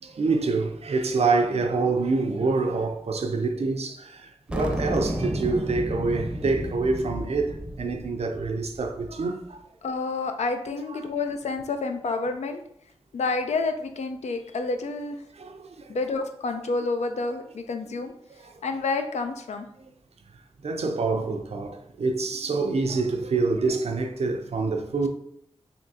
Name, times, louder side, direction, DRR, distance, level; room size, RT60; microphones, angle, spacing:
voice 1, 0.0-9.6 15.4-16.0 19.8-19.9 20.6-25.1, right 3 dB, 70° right, 0.5 m, -26 dB
sound 1, 4.5-9.2, equal, 10° right, 0.6 m, -32 dB
voice 2, 9.8-12.6 13.1-15.2 15.9-18.1 18.6-19.7, left 3 dB, 85° left, 0.4 m, -29 dB
3.5 x 2.8 x 2.7 m
cardioid pair, 45°, 11 cm